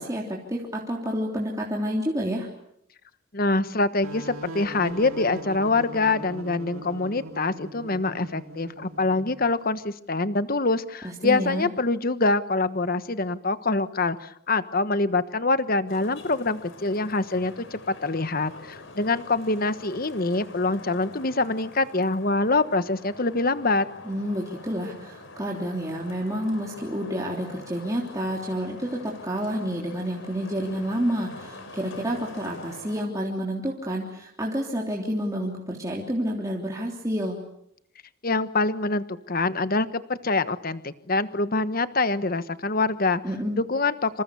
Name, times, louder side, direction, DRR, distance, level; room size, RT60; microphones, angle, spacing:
voice 1, 0.0-2.5 11.0-11.7 24.0-37.4 43.2-43.6, equal, 15° right, -2 dB, 3.3 m, -29 dB
voice 2, 3.3-23.9 38.2-43.2 43.6-44.2, left 3 dB, 40° left, 12 dB, 1.2 m, -25 dB
sound 1, 4.0-9.5, right 1 dB, 80° right, 2.5 m, -40 dB
Traffic noise roadway noise, 15.9-33.1, left 2 dB, 65° left, 4.9 m, -45 dB
27.5 x 27.0 x 7.0 m, 0.75 s
head